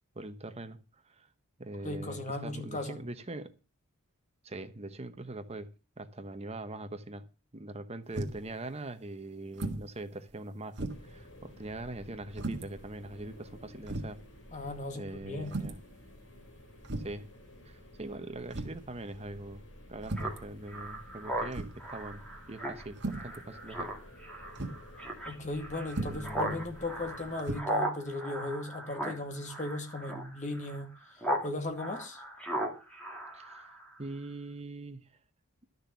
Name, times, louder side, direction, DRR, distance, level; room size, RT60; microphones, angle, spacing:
voice 1, 0.1-0.8 1.0-1.3 1.6-3.5 4.4-5.7 6.0-7.2 7.5-14.2 14.9-15.8 17.0-17.3 17.6-19.6 19.9-23.9 26.0-26.7 33.3-33.7 34.0-35.1, right 2 dB, 30° right, 1.1 m, -42 dB
voice 2, 1.8-3.0 14.5-15.6 25.3-30.9 31.4-32.2, left 2 dB, 35° left, 2.2 m, -37 dB
sound 1, 8.1-8.5 9.5-9.9 10.3-10.4 10.8-11.2 12.3-12.7 13.4-13.5 13.9-14.2 15.5-15.9 16.8-17.2 18.5-18.9 20.0-20.4 21.5-21.9 22.9-23.3 24.5-24.8 25.9-26.3 27.4-27.6, right 2 dB, 55° right, 1.8 m, -36 dB
sound 2, 10.9-27.4, left 1 dB, 65° left, 3.3 m, -53 dB
Speech synthesizer, 20.2-31.5 31.8-34.0, right 1 dB, 5° left, 2.3 m, -37 dB
12.0 x 6.6 x 6.9 m
head